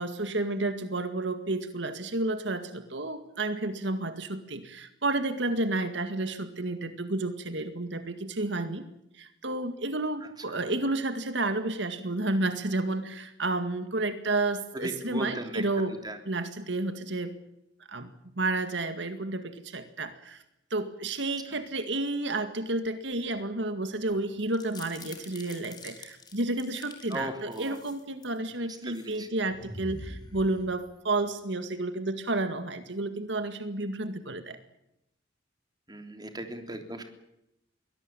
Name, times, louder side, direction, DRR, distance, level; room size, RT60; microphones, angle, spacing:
voice 1, 0.0-8.9 9.1-15.9 16.3-17.3 17.9-18.1 18.4-20.4 20.7-34.6, right 2 dB, 70° right, 9 dB, 2.0 m, -31 dB
voice 2, 14.7-15.6 16.0-16.2 27.1-27.8 28.9-29.3 35.9-37.0, right 1 dB, 20° right, 6 dB, 3.3 m, -37 dB
sound 1, 24.4-27.2 27.5-28.4 28.8-29.1 29.5-31.1, left 2 dB, 25° left, 4.7 m, -45 dB
23.0 x 18.0 x 9.1 m, 0.83 s
head